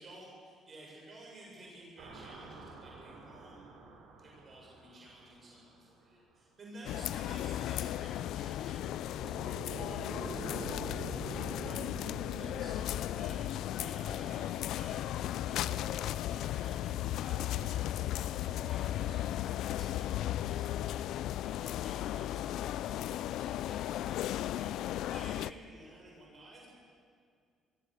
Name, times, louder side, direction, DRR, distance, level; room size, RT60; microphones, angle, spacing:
voice 1, 0.0-3.7 4.2-13.4 13.8-21.1 21.4-26.7, right 1 dB, 40° right, -2 dB, 7.3 m, -54 dB
sound 1, 2.0-5.9 8.9-16.0, right 3 dB, 75° right, 4.6 m, -47 dB
sound 2, 6.8-25.5, left 12 dB, 75° left, 0.4 m, -35 dB
23.5 x 15.5 x 8.0 m, 2.1 s
supercardioid pair, 70°, 0 cm